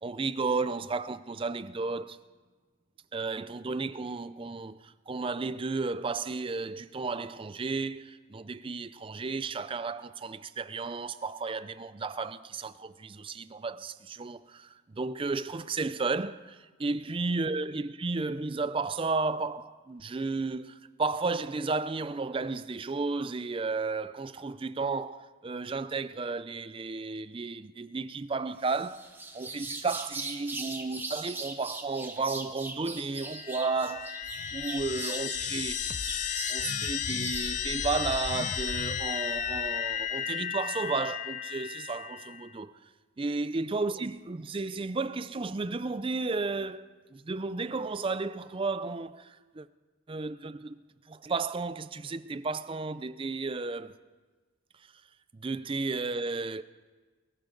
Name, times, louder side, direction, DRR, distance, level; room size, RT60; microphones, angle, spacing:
voice 1, 0.0-2.2 3.1-29.1 29.3-34.2 34.5-35.8 36.2-42.7 43.2-49.7 50.1-50.8 51.1-53.9 55.3-56.6, right 3 dB, 25° right, 0.4 m, -33 dB
sound 1, 28.6-37.5, right 3 dB, 10° right, 0.9 m, -40 dB
sound 2, 33.2-42.5, left 8 dB, 35° left, 0.4 m, -34 dB
23.0 x 14.5 x 3.9 m
head